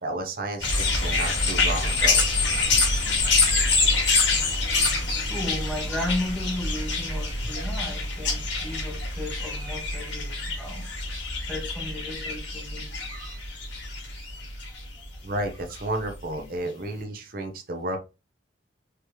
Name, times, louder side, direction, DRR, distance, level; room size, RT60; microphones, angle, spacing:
voice 1, 0.0-2.2 3.1-3.4 13.1-13.4 15.2-18.0, right 1 dB, 50° right, 0.9 m, -32 dB
sound 1, 0.6-15.1 15.8-15.9, left 3 dB, 75° left, 2.4 m, -26 dB
voice 2, 2.5-3.1 4.3-10.9 11.5-12.9 14.7-14.8 16.4-16.5, left 1 dB, ahead, 1.1 m, -35 dB
5.0 x 3.1 x 3.0 m
head